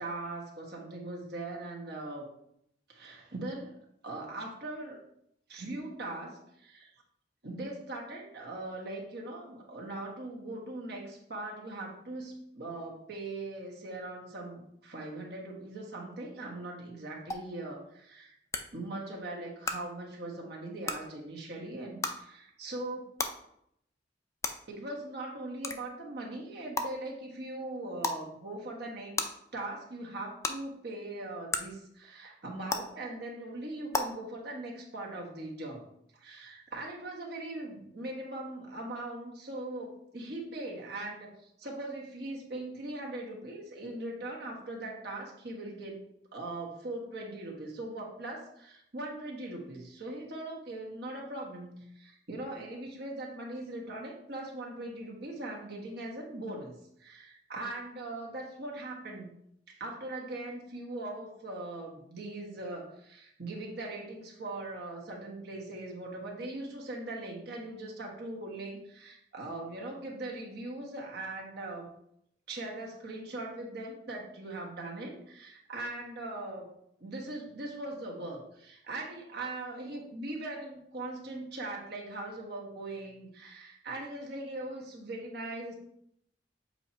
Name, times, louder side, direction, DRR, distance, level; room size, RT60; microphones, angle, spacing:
voice 1, 0.0-2.3 2.9-3.7 4.0-5.0 5.5-6.9 7.4-18.4 18.7-23.1 24.7-35.8 36.1-41.3 41.6-46.0 46.3-59.3 59.7-71.9 72.5-76.7 77.0-85.7, right 2 dB, 65° right, -1 dB, 1.4 m, -40 dB
sound 1, 17.3-17.4 18.5-18.6 19.6-19.7 20.8-20.9 22.0-22.1 23.2-23.3 24.4-24.5 25.6-25.8 26.8-26.9 28.0-28.2 29.2-29.3 30.4-30.5 31.5-31.6 32.7-32.8 33.9-34.0, left 3 dB, 15° left, 0.4 m, -30 dB
7.7 x 2.9 x 4.3 m, 0.74 s
head